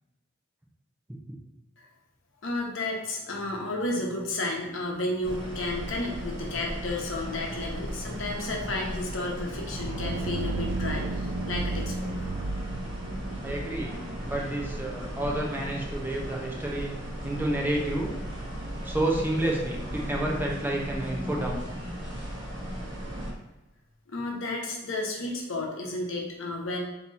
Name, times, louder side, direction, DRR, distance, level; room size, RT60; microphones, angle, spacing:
voice 1, 2.4-12.1 24.1-26.8, left 2 dB, 75° left, -1 dB, 0.9 m, -32 dB
singapore-mrt-give-way, 5.2-23.3, equal, 25° right, 1.1 m, -36 dB
sound 1, 9.7-21.1, right 3 dB, 80° right, 0.3 m, -37 dB
voice 2, 13.0-14.0 14.3-16.9 17.2-18.1 18.8-21.6, right 1 dB, 10° right, -1 dB, 0.7 m, -30 dB
3.9 x 2.9 x 4.0 m, 1.0 s
head